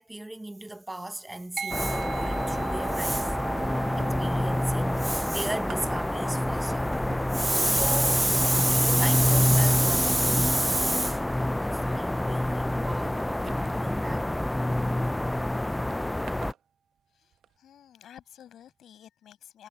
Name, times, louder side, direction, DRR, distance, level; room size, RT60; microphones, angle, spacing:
voice 1, 0.0-3.4 3.9-7.0 7.3-14.3, right 1 dB, 10° right, 0.8 m, -30 dB
sound 1, 1.6-11.3, right 6 dB, 55° right, 0.6 m, -40 dB
sound 2, 1.7-16.5, left 1 dB, 10° left, 0.3 m, -27 dB
sound 3, 3.4-4.4 4.8-15.2 15.9-16.6 17.3-17.5, right 10 dB, 80° right, 0.9 m, -49 dB
voice 2, 17.1-19.7, left 10 dB, 75° left, 7.4 m, -52 dB
cardioid pair, 90°, 0 cm